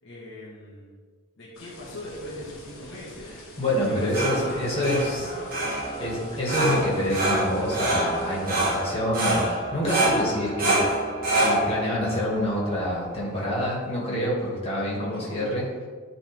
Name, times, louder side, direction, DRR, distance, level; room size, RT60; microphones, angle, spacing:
voice 1, 0.0-1.0 1.4-3.4 3.8-6.2 15.0-15.4, equal, 60° left, -6 dB, 1.6 m, -41 dB
sound 1, 1.5-8.8, left 2 dB, 80° left, 1.6 m, -47 dB
voice 2, 3.6-5.3 6.0-10.8 11.4-15.7, left 1 dB, 25° left, -5 dB, 2.2 m, -27 dB
sound 2, 3.8-13.5, right 1 dB, 45° right, 1.8 m, -27 dB
11.5 x 3.9 x 3.5 m, 1.5 s
head